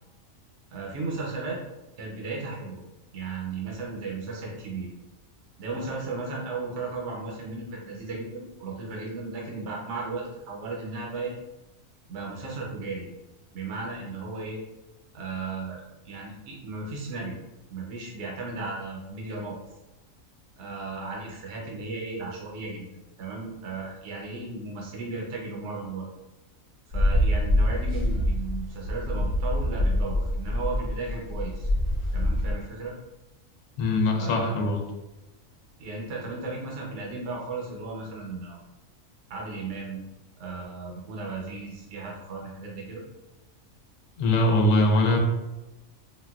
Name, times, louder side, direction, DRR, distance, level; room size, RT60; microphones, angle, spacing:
voice 1, 0.7-1.6 2.0-2.8 3.1-4.9 5.6-11.3 12.1-13.1 13.5-14.6 15.1-17.4 17.7-19.5 20.6-22.9 23.2-26.1 26.9-31.7 32.1-32.9 34.1-34.7 35.8-38.6 39.3-40.0 40.4-43.0, right 3 dB, 65° right, -2 dB, 0.9 m, -35 dB
sound 1, 26.9-32.5, left 1 dB, 20° right, 0.6 m, -25 dB
voice 2, 33.8-34.8 44.2-45.2, left 2 dB, 80° left, 2 dB, 1.0 m, -22 dB
3.8 x 2.2 x 2.3 m, 1.0 s
omnidirectional pair, 1.4 m